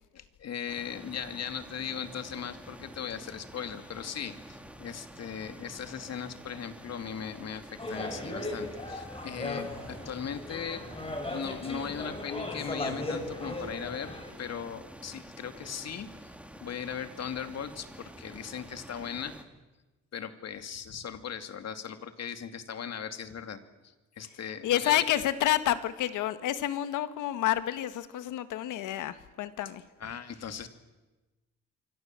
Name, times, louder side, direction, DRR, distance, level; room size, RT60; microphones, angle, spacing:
voice 1, 0.1-10.8 11.3-16.3 16.6-19.3 20.1-25.0 30.0-30.7, left 7 dB, 60° left, 8 dB, 2.6 m, -38 dB
sound 1, 0.7-19.4, right 1 dB, 5° right, 3.0 m, -49 dB
sound 2, 7.8-14.3, left 1 dB, 20° left, 7.2 m, -37 dB
voice 2, 24.6-29.8, left 12 dB, 85° left, 12 dB, 1.7 m, -29 dB
27.0 x 24.5 x 7.7 m, 1.2 s
cardioid pair, 90°, 30 cm